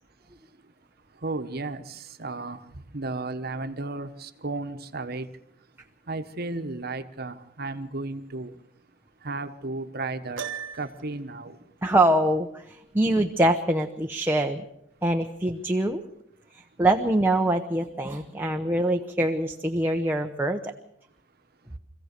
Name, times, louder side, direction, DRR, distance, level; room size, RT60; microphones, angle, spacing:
voice 1, 1.2-2.6 2.9-5.3 6.1-8.5 9.2-10.4 10.7-11.5, right 3 dB, 55° right, 1.3 m, -34 dB
Piano, 10.4-11.2, right 7 dB, 85° right, 1.3 m, -36 dB
voice 2, 11.8-14.6 15.0-16.0 16.5-20.7, right 1 dB, 10° right, 1.0 m, -24 dB
25.5 x 16.0 x 6.8 m
head